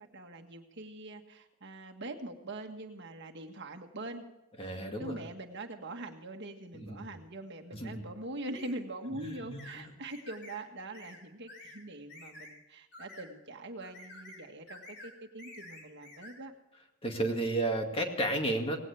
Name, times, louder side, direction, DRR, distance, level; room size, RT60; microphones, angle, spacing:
voice 1, 0.1-4.2 5.0-16.5, right 2 dB, 50° right, 4 dB, 1.6 m, -43 dB
voice 2, 4.6-5.2 6.7-7.0 7.7-7.9 9.1-9.9 17.0-18.8, right 1 dB, 25° left, 3 dB, 2.1 m, -33 dB
sound 1, 8.5-8.7 9.6-9.8 10.1-10.6 10.9-11.2 11.5-11.8 12.1-12.5 12.9-13.3 13.8-14.4 14.7-15.1 15.4-16.3, left 2 dB, 50° left, 4.3 m, -50 dB
18.5 x 17.0 x 3.4 m, 0.97 s
head